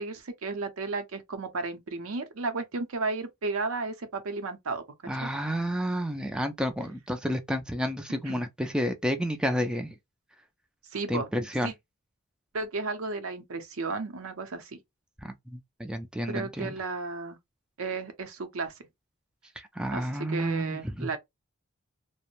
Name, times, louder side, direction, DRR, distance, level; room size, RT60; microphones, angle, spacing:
voice 1, 0.0-4.8 5.2-5.3 8.3-8.4 10.9-11.3 11.6-11.7 12.5-14.8 16.3-17.4 17.8-18.7 19.9-21.2, right 3 dB, 85° right, 0.6 m, -33 dB
voice 2, 5.1-10.0 11.1-11.7 15.2-16.8 19.6-21.1, equal, 5° right, 0.3 m, -31 dB
2.5 x 2.0 x 2.9 m
head